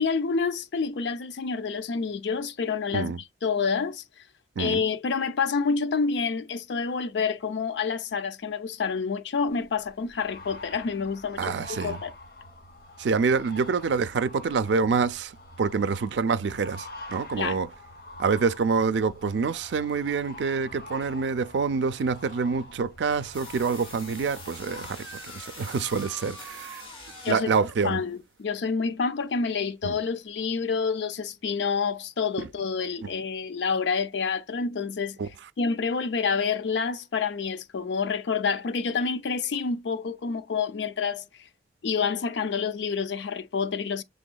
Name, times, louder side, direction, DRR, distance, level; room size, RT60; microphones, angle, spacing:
voice 1, 0.0-3.1 3.4-4.0 4.6-12.1 17.4-17.6 27.2-27.5 27.8-35.2 35.6-41.3 41.8-44.0, left 5 dB, 80° left, 0.5 m, -28 dB
sound 1, 9.5-24.9, left 1 dB, 55° left, 0.8 m, -45 dB
voice 2, 11.4-12.0 13.0-15.3 15.6-17.7 18.2-26.8 27.3-28.0 29.8-30.0 32.4-32.5 33.0-33.1 35.2-35.3, right 5 dB, 80° right, 0.4 m, -26 dB
sound 2, 23.3-27.6, left 2 dB, 30° left, 1.9 m, -44 dB
sound 3, 24.8-27.8 31.1-31.2 33.3-33.4 39.6-39.7, right 3 dB, 10° right, 0.7 m, -47 dB
6.1 x 3.5 x 2.2 m
head